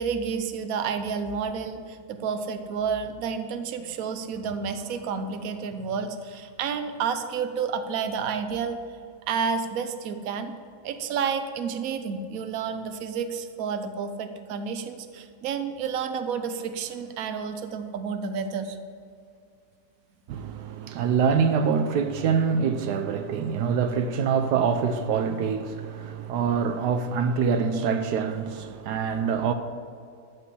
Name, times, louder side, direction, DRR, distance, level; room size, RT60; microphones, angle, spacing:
voice 1, 0.0-8.8 9.3-10.5 10.8-18.8, right 6 dB, 65° right, 1.2 m, -30 dB
voice 2, 20.3-29.5, right 6 dB, 80° right, 1.3 m, -25 dB
13.5 x 5.4 x 8.3 m
omnidirectional pair, 1.7 m